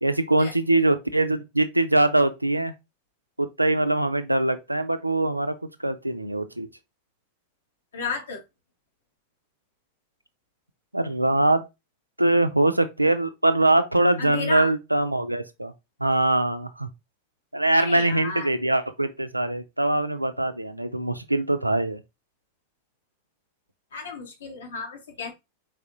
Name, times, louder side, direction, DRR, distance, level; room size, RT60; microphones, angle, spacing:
voice 1, 0.0-2.7 3.4-5.6 5.8-6.7 10.9-11.7 12.2-15.7 16.0-16.9 17.5-22.0, right 2 dB, 85° right, 0.5 m, -23 dB
voice 2, 7.9-8.4 14.2-14.7 17.7-18.5 23.9-25.3, left 5 dB, 65° left, 1.6 m, -33 dB
4.8 x 3.5 x 2.9 m
figure-of-eight pair, 90°, 0 cm